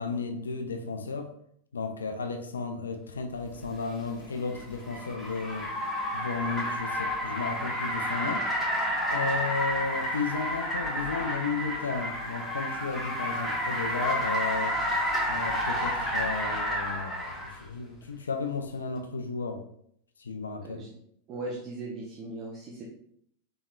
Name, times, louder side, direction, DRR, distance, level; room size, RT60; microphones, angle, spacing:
voice 1, 0.0-1.3 1.7-5.7 6.1-8.5 9.1-14.8 15.2-19.6 20.2-20.8, left 4 dB, 70° left, 5 dB, 0.4 m, -34 dB
Car, 3.6-17.6, equal, 5° left, 1.3 m, -30 dB
voice 2, 20.6-20.9 21.3-22.8, right 2 dB, 30° right, -3 dB, 0.6 m, -38 dB
4.2 x 3.6 x 2.3 m, 0.70 s
figure-of-eight pair, 90°, 0 cm